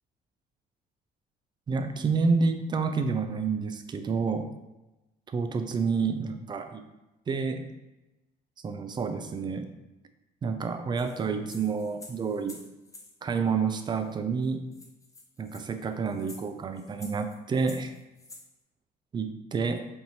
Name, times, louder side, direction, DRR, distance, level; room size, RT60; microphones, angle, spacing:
voice 1, 1.7-4.5 5.3-6.8 7.3-7.7 8.6-9.6 10.4-12.6 13.2-14.6 15.4-17.9 19.1-19.9, right 5 dB, 25° right, 8 dB, 0.4 m, -29 dB
sound 1, 11.0-13.1 14.1-14.2 14.4-14.5 14.7-18.5, left 2 dB, 20° left, 0.6 m, -49 dB
4.6 x 2.7 x 2.8 m, 1.0 s
cardioid pair, 110°, 17 cm